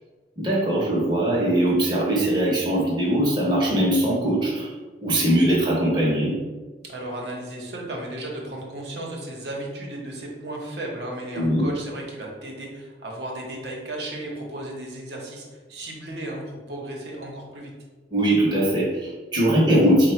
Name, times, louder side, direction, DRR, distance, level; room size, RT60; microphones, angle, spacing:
voice 1, 0.4-4.7 5.0-6.3 11.3-11.7 18.1-20.1, right 1 dB, 25° right, -5 dB, 0.7 m, -21 dB
voice 2, 6.8-17.7, right 1 dB, 65° right, -1 dB, 0.8 m, -34 dB
3.9 x 2.1 x 4.3 m, 1.3 s
head